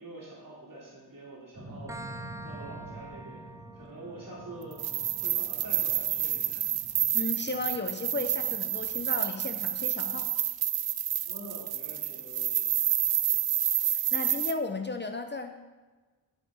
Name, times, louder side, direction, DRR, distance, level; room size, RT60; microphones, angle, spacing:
voice 1, 0.0-3.5 3.7-6.6 11.2-12.7, right 2 dB, 60° right, -5 dB, 3.2 m, -46 dB
sound 1, 1.5-9.8, right 1 dB, 40° right, 2.5 m, -48 dB
sound 2, 1.9-9.3, right 2 dB, 10° right, 0.5 m, -49 dB
sound 3, 4.7-14.5, right 11 dB, 75° right, 0.5 m, -29 dB
voice 2, 7.1-10.3 13.9-15.6, left 3 dB, 30° left, 6 dB, 0.7 m, -35 dB
10.5 x 5.2 x 4.9 m, 1.3 s
cardioid pair, 55°, 38 cm